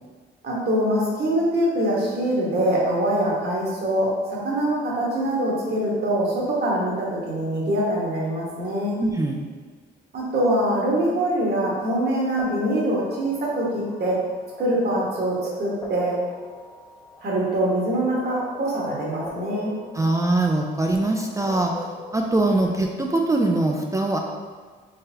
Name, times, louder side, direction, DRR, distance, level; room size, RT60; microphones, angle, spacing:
voice 1, 0.4-4.1 4.4-8.9 10.1-14.1 14.6-16.1 17.2-19.7, right 1 dB, 55° right, -4 dB, 1.2 m, -24 dB
voice 2, 9.0-9.4 20.0-21.8 22.1-24.2, right 2 dB, 15° right, 1 dB, 0.3 m, -22 dB
sound 1, 12.0-22.3, left 2 dB, 15° left, 0.6 m, -41 dB
3.9 x 3.1 x 2.8 m, 1.5 s
cardioid pair, 90°, 20 cm